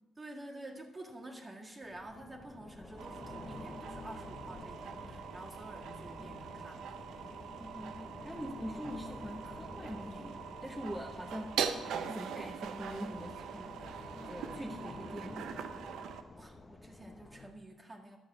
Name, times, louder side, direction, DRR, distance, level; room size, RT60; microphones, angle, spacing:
voice 1, 0.2-6.8 16.4-18.2, right 1 dB, 25° right, 0 dB, 1.8 m, -49 dB
sound 1, 1.8-17.5, left 3 dB, 25° left, 0.9 m, -50 dB
sound 2, 3.0-16.2, right 7 dB, 80° right, 0.7 m, -42 dB
voice 2, 7.6-11.6 11.8-15.5, equal, ahead, -1 dB, 1.1 m, -44 dB
12.0 x 7.1 x 6.1 m, 1.2 s
cardioid pair, 90°, 0 cm